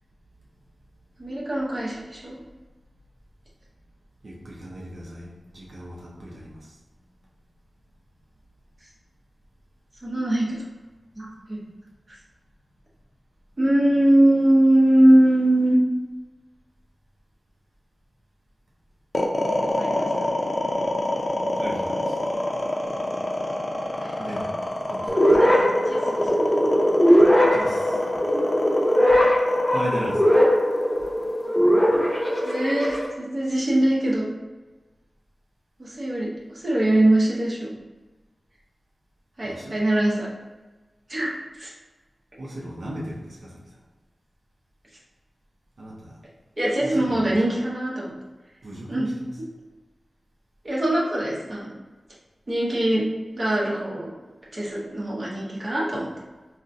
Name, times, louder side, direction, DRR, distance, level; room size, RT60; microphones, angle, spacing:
voice 1, 1.2-2.4 10.0-10.6 11.2-11.6 13.6-15.8 19.7-20.1 24.0-24.1 25.4-25.5 25.9-26.5 32.4-34.3 35.8-37.7 39.4-40.3 41.1-41.3 41.6-41.7 46.6-48.1 48.9-49.1 49.4-49.5 50.6-51.7 52.5-53.1 53.3-54.1 54.5-56.1, right 1 dB, 40° right, -5 dB, 0.8 m, -22 dB
voice 2, 4.2-5.3 5.5-6.6 21.6-22.1 24.2-24.5 24.9-25.1 27.5-27.9 29.7-30.2 39.4-39.7 42.4-43.5 45.8-46.2 46.8-47.4 48.6-49.3, right 1 dB, 70° right, -4 dB, 0.6 m, -36 dB
sound 1, 19.1-31.4, left 1 dB, 40° left, 0.5 m, -27 dB
sound 2, 25.1-33.1, equal, 5° left, 1.0 m, -20 dB
3.8 x 2.1 x 2.6 m, 1.2 s
wide cardioid pair, 95°, 0 cm